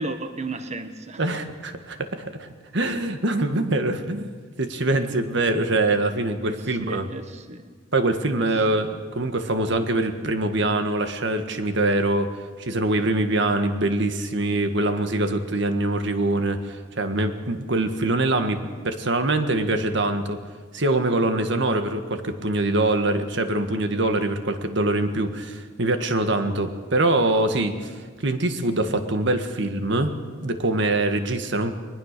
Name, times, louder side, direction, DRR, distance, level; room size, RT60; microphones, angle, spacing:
voice 1, 0.0-1.2 6.4-7.7 8.4-8.5, right 2 dB, 35° right, 8 dB, 1.5 m, -34 dB
voice 2, 1.2-2.5 2.7-4.3 4.6-7.1 7.9-20.4 20.7-30.1 30.4-31.7, right 2 dB, 65° right, 7 dB, 1.7 m, -24 dB
22.0 x 20.0 x 6.8 m, 1.5 s
head